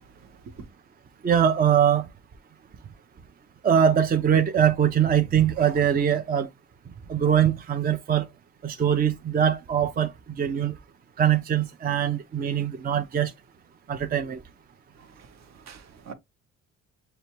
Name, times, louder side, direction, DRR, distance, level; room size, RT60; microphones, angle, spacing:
voice 1, 0.1-0.7 15.0-16.1, right 5 dB, 60° right, 0.9 m, -46 dB
voice 2, 1.2-2.0 3.6-6.5 7.1-8.2 8.6-10.1 10.4-10.7 11.2-13.3 13.9-14.4, right 9 dB, 30° right, 0.5 m, -22 dB
6.6 x 2.2 x 2.9 m
cardioid pair, 90°, 30 cm